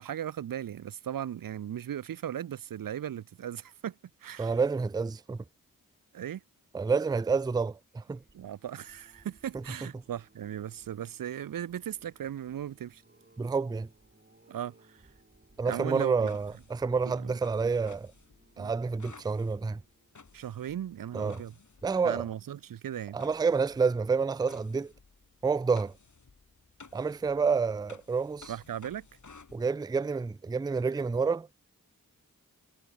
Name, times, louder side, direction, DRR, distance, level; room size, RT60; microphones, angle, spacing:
voice 1, 0.0-4.0 4.2-4.5 6.1-6.4 8.3-13.0 14.5-15.0 15.6-16.3 17.2-17.3 18.6-18.7 20.3-21.6 22.0-23.2 28.5-29.1, right 10 dB, 75° right, 0.5 m, -37 dB
voice 2, 4.4-5.4 6.7-8.2 13.4-13.9 15.6-18.1 18.6-19.8 21.1-21.4 21.8-22.2 23.1-24.9 25.4-25.9 26.9-28.5 29.5-31.6, right 5 dB, 10° right, 0.3 m, -29 dB
sound 1, 7.7-21.1 21.6-22.0 22.2-22.3, right 2 dB, 30° right, 2.9 m, -64 dB
sound 2, 16.3-22.4 23.2-29.6, left 4 dB, 55° left, 2.2 m, -56 dB
cardioid pair, 45°, 35 cm